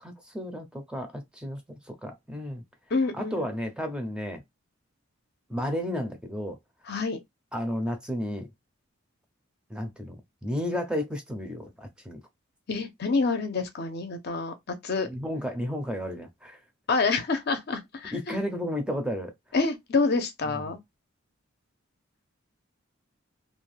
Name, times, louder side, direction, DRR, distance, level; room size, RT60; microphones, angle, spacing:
voice 1, 0.0-2.6 3.1-4.4 5.5-6.6 7.5-8.5 9.7-10.2 10.4-12.2 15.1-16.6 18.1-19.3 20.5-20.6, equal, 5° right, 0.5 m, -32 dB
voice 2, 2.9-3.5 6.9-7.2 12.7-14.5 14.8-15.1 16.9-18.4 19.5-20.8, left 4 dB, 50° left, 0.6 m, -27 dB
2.6 x 2.2 x 3.2 m
head